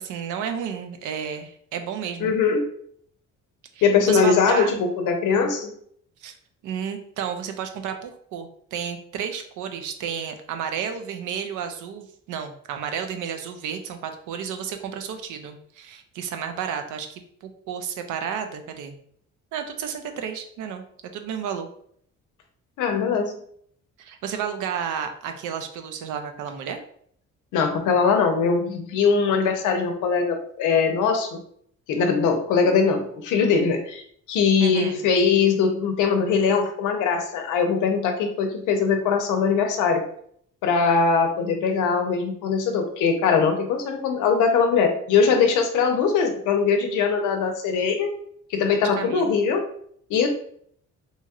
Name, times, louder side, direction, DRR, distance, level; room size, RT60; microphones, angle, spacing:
voice 1, 0.0-2.3 3.7-4.7 6.2-6.3 6.6-18.9 19.5-20.8 21.1-21.7 24.0-26.8 34.6-35.0 49.0-49.3, right 7 dB, 85° right, 6 dB, 0.5 m, -32 dB
voice 2, 2.2-2.6 3.8-5.7 22.8-23.3 27.5-31.4 31.9-34.0 34.3-40.1 40.6-48.1 48.5-49.6 50.1-50.3, left 5 dB, 85° left, 5 dB, 0.6 m, -21 dB
2.8 x 2.8 x 2.3 m, 0.64 s
cardioid pair, 90°, 30 cm